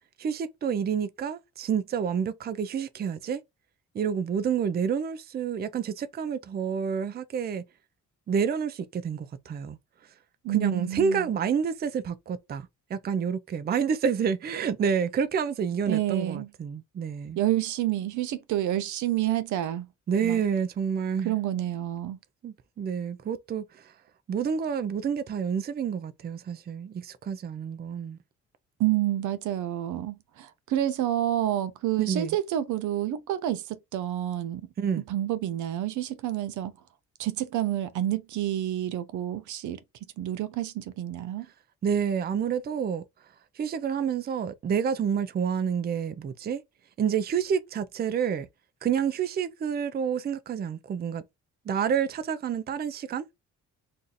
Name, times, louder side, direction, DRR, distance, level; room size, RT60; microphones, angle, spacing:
voice 1, 0.2-3.4 3.9-7.6 8.3-9.8 10.5-17.4 20.1-21.4 22.4-23.9 24.3-28.2 32.0-32.4 34.8-35.0 41.8-43.0 43.6-46.6 47.0-48.5 48.8-51.2 51.7-53.2, right 7 dB, 35° right, 0.4 m, -29 dB
voice 2, 10.4-11.3 15.9-16.5 17.4-19.9 20.2-20.4 21.2-22.2 28.8-34.6 35.1-36.7 37.2-39.8 40.2-41.5, right 13 dB, 75° right, 0.6 m, -29 dB
2.6 x 2.4 x 4.0 m
cardioid pair, 90°, 30 cm